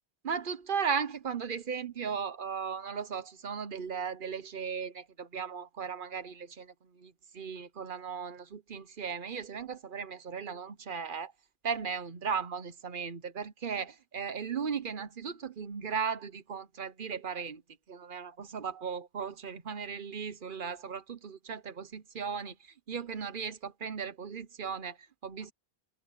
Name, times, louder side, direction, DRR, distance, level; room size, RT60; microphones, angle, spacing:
voice 1, 0.2-11.3 11.6-17.6 17.9-25.5, right 6 dB, 55° right, 1.0 m, -36 dB
omnidirectional pair, 1.0 m